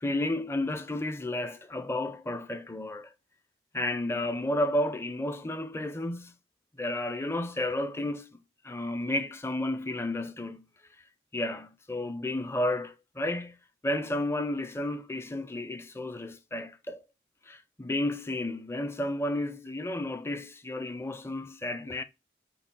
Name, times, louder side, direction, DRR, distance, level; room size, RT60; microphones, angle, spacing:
voice 1, 0.0-3.1 3.7-6.3 6.8-8.4 8.6-10.7 11.3-13.6 13.8-17.0 17.5-22.0, left 1 dB, 15° left, 0.5 m, -32 dB
5.3 x 2.2 x 4.4 m
head